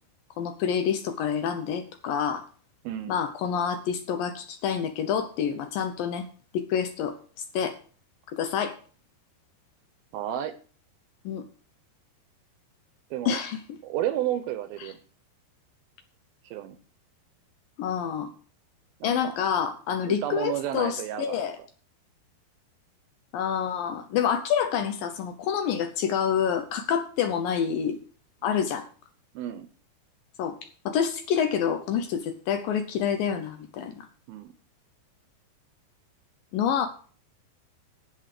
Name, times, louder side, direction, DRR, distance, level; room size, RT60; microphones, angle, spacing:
voice 1, 0.4-2.5 3.1-6.3 6.5-7.8 8.3-8.8 11.3-11.4 13.3-13.8 14.8-14.9 17.8-18.3 19.0-21.6 23.3-28.0 28.4-28.9 30.4-30.6 30.9-34.1 36.5-36.9, left 8 dB, 75° left, 8 dB, 2.3 m, -27 dB
voice 2, 2.8-3.2 10.1-10.6 13.1-13.4 13.8-15.0 16.4-16.8 19.0-19.4 20.1-21.4 28.5-28.6 29.4-29.7 34.3-34.5, right 12 dB, 75° right, 11 dB, 2.4 m, -31 dB
9.9 x 8.0 x 6.6 m, 0.42 s
omnidirectional pair, 4.8 m